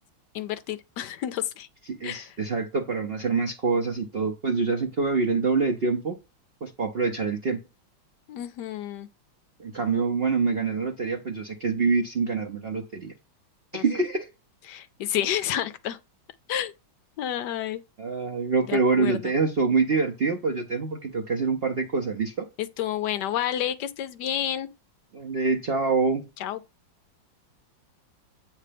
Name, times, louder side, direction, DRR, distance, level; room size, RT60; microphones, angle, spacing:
voice 1, 0.3-1.7 2.0-2.4 8.3-9.1 13.7-13.8 14.7-16.0 16.5-16.7 17.2-17.8 18.7-19.3 22.6-24.7 26.4-26.6, left 11 dB, 75° left, 1.0 m, -30 dB
voice 2, 1.9-6.2 6.6-7.6 9.6-13.1 13.7-14.3 18.0-22.5 25.1-26.2, right 4 dB, 80° right, 0.5 m, -25 dB
8.4 x 3.3 x 5.0 m
omnidirectional pair, 2.2 m